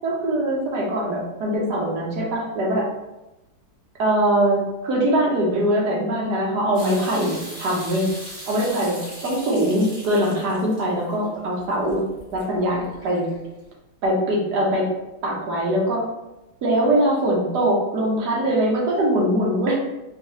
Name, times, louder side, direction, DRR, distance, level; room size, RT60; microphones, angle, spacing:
voice 1, 0.0-2.8 4.0-8.1 8.5-9.0 9.2-12.0 12.3-13.3 14.0-14.8 15.2-16.0 16.6-19.8, right 1 dB, 65° right, -2 dB, 1.4 m, -22 dB
sound 1, 6.7-13.6, equal, 20° right, 1.0 m, -40 dB
4.5 x 2.5 x 3.0 m, 0.98 s
omnidirectional pair, 2.1 m